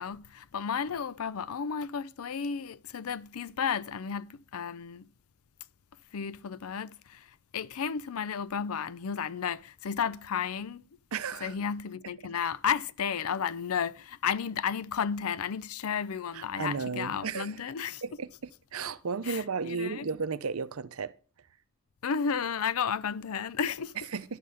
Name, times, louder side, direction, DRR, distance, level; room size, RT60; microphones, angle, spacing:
voice 1, 0.0-5.1 6.1-10.8 11.4-18.0 19.3-20.1 22.0-24.0, left 7 dB, 85° left, 0.5 m, -33 dB
voice 2, 11.1-11.5 16.3-17.5 18.0-21.1 24.1-24.4, right 5 dB, 80° right, 0.7 m, -34 dB
12.0 x 5.6 x 6.4 m
head